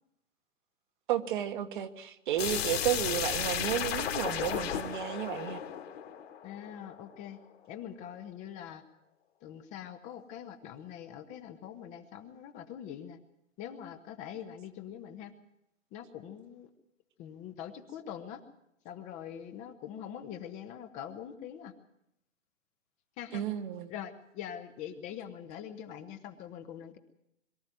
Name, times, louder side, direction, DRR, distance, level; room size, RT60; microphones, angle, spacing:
voice 1, 1.1-5.6 23.3-23.9, right 11 dB, 40° right, 8 dB, 1.6 m, -32 dB
sound 1, 2.4-7.1, left 9 dB, 55° left, 3.0 m, -34 dB
voice 2, 6.4-7.4 7.7-8.8 9.4-13.2 13.6-15.3 15.9-16.7 17.2-18.4 18.8-21.7 23.2-23.4 23.9-27.0, left 9 dB, 20° left, 7 dB, 1.2 m, -43 dB
23.0 x 13.0 x 9.2 m, 0.80 s
hypercardioid pair, 145°, 38 cm